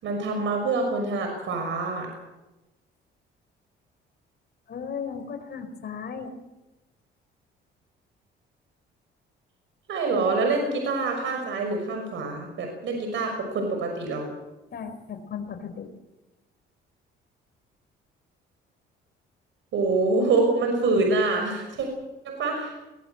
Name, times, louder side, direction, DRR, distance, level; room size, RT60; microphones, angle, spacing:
voice 1, 0.0-2.1 9.9-14.3 19.7-21.9 22.2-22.7, right 3 dB, 70° right, 3 dB, 6.0 m, -25 dB
voice 2, 4.7-6.3 14.7-15.9, left 6 dB, 55° left, 7 dB, 4.6 m, -36 dB
21.5 x 19.5 x 8.0 m, 1.0 s
cardioid pair, 90°, 21 cm